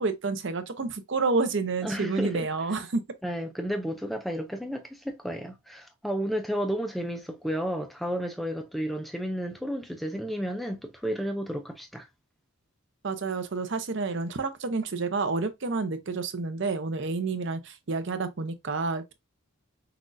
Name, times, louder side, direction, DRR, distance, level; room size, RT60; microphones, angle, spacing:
voice 1, 0.0-3.0 13.0-19.1, right 3 dB, 55° right, 0.6 m, -29 dB
voice 2, 1.8-2.5 3.2-12.1, equal, ahead, 0.4 m, -32 dB
5.8 x 2.4 x 2.6 m
head